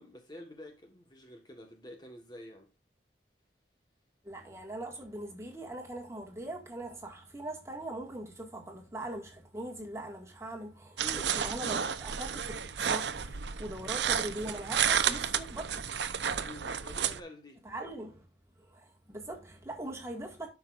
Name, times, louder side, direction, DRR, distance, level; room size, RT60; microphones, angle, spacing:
voice 1, 0.0-2.7 11.0-11.3 16.4-17.6, left 1 dB, 25° left, 1.4 m, -48 dB
voice 2, 4.2-15.9 16.2-16.4 17.6-18.3 18.6-20.5, right 1 dB, 15° right, 1.9 m, -41 dB
sound 1, 11.0-17.2, right 8 dB, 85° right, 0.7 m, -32 dB
12.0 x 5.9 x 2.5 m
head